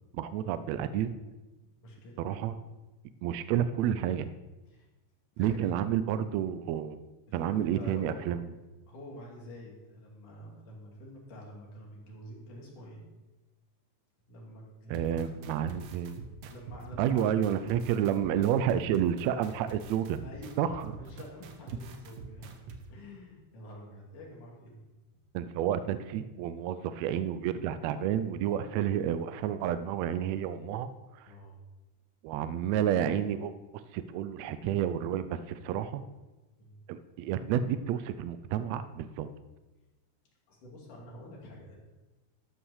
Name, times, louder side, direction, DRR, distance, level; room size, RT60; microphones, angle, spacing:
voice 1, 0.1-1.1 2.2-2.6 3.2-4.3 5.4-7.0 7.3-8.5 14.9-16.2 17.0-20.2 20.6-20.9 25.3-30.9 31.2-31.3 32.2-33.5 33.9-36.0 36.9-39.3, right 10 dB, 80° right, 12 dB, 1.6 m, -30 dB
voice 2, 1.8-2.2 4.7-4.9 5.4-5.7 7.3-8.3 8.9-13.0 14.3-15.3 16.5-17.3 20.2-22.5 22.9-24.8 31.3-31.6 36.6-36.8 40.5-41.8, left 1 dB, 85° left, -2 dB, 3.9 m, -47 dB
sound 1, 14.9-22.8, right 4 dB, 65° right, 1.8 m, -45 dB
13.0 x 5.7 x 6.4 m, 1.1 s
omnidirectional pair, 3.5 m